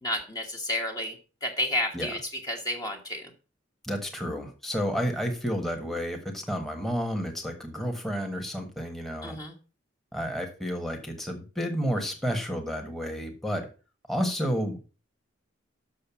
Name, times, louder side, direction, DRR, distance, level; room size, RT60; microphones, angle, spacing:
voice 1, 0.0-1.2 1.4-3.3 9.2-9.6, left 1 dB, 20° left, 1 dB, 1.3 m, -31 dB
voice 2, 3.8-9.4 10.1-13.7 14.1-14.8, equal, ahead, 3 dB, 1.3 m, -31 dB
6.6 x 6.4 x 7.0 m, 0.35 s
head